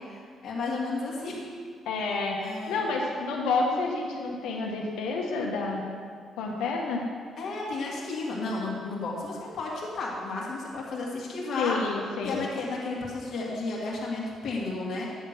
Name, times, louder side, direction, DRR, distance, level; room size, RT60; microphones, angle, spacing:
voice 1, 0.1-1.5 2.4-2.8 7.4-11.8 12.2-15.0, left 3 dB, 65° left, -4 dB, 1.8 m, -33 dB
voice 2, 1.8-2.4 2.7-5.8 6.4-7.0 11.6-12.4, left 3 dB, 90° left, -1 dB, 1.2 m, -29 dB
10.0 x 3.7 x 6.7 m, 2.1 s
cardioid pair, 90°, 0 cm